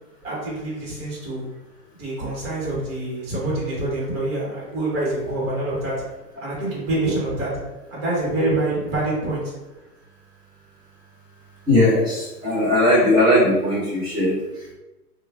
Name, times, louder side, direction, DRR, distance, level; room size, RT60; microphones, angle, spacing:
voice 1, 0.2-1.4 2.0-5.9 6.4-7.5 7.9-9.4, right 2 dB, 40° right, -5 dB, 1.4 m, -26 dB
voice 2, 11.7-14.7, left 1 dB, 10° right, -9 dB, 0.8 m, -19 dB
2.9 x 2.4 x 3.3 m, 1.1 s
hypercardioid pair, 150°, 47 cm